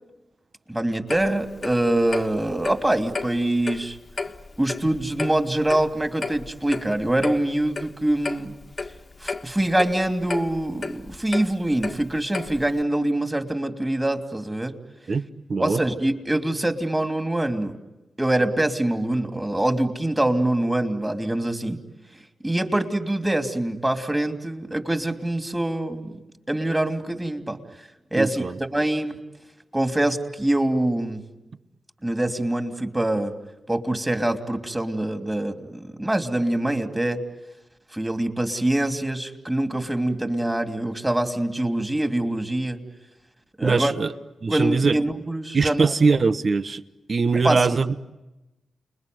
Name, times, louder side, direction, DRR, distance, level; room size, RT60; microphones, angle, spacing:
voice 1, 0.7-4.0 4.6-8.5 9.2-14.8 15.6-17.8 18.2-21.8 22.4-26.2 26.5-27.6 28.1-28.4 28.7-29.2 29.7-31.2 32.0-33.3 33.7-37.2 37.9-42.8 43.6-43.9 44.5-45.9 47.3-47.7, right 1 dB, 15° right, 6 dB, 3.0 m, -24 dB
Clock, 1.1-12.8, left 3 dB, 50° left, 1.6 m, -34 dB
voice 2, 15.5-15.8 28.2-28.5 43.6-44.1 44.4-45.0 45.5-46.8 47.1-47.9, right 4 dB, 55° right, 13 dB, 1.1 m, -21 dB
29.5 x 21.0 x 9.5 m, 1.0 s
supercardioid pair, 45°, 0 cm